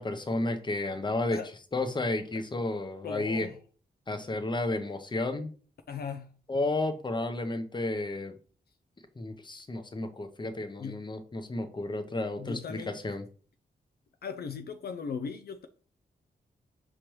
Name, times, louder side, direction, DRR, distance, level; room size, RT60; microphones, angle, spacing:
voice 1, 0.0-1.4 1.7-3.5 4.1-5.5 6.5-8.4 9.2-13.2, left 2 dB, 25° left, 0.7 m, -32 dB
voice 2, 3.0-3.6 5.9-6.4 10.8-11.0 12.4-13.0 14.2-15.7, left 6 dB, 65° left, 0.4 m, -38 dB
5.1 x 3.2 x 3.0 m
cardioid pair, 55°, 18 cm